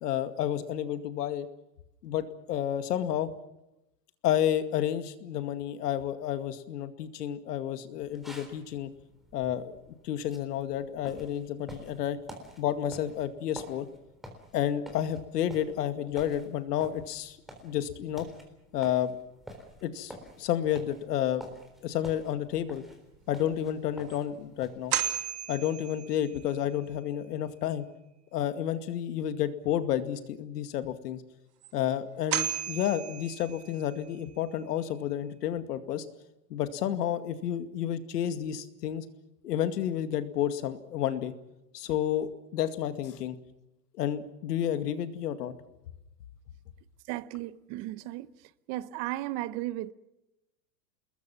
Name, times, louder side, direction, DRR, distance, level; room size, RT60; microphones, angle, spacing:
voice 1, 0.0-1.5 2.0-3.3 4.2-8.9 9.3-12.2 12.6-13.9 14.5-17.4 17.6-18.3 18.7-19.1 19.8-21.4 21.8-22.8 23.3-24.9 25.5-27.9 28.3-31.2 31.7-36.0 36.5-39.0 39.4-41.3 41.7-43.4 44.0-45.5, left 10 dB, 75° left, 2.3 m, -31 dB
sound 1, 8.0-25.2, equal, ahead, 3.7 m, -50 dB
sound 2, 23.5-23.6 24.1-24.2 24.9-26.5 31.6-31.7 32.3-34.0, right 10 dB, 75° right, 3.0 m, -34 dB
voice 2, 47.1-48.3 48.7-49.9, right 16 dB, 35° right, 0.9 m, -35 dB
29.0 x 21.0 x 6.0 m
supercardioid pair, 150°, 48 cm